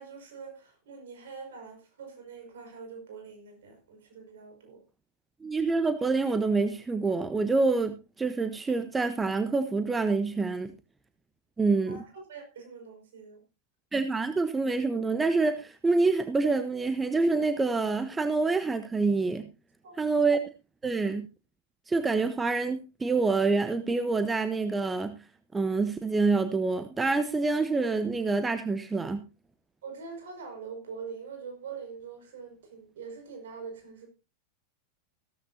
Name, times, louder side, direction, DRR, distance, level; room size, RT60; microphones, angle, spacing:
voice 1, 0.0-4.8 11.9-13.4 19.8-20.0 29.8-34.1, right 5 dB, 60° right, 5.5 m, -44 dB
voice 2, 5.4-10.7 11.6-12.0 13.9-19.5 20.0-20.4 20.8-21.3 21.9-25.2 25.5-29.3, right 3 dB, 10° right, 1.0 m, -26 dB
16.0 x 13.5 x 2.7 m
figure-of-eight pair, 90°, 0 cm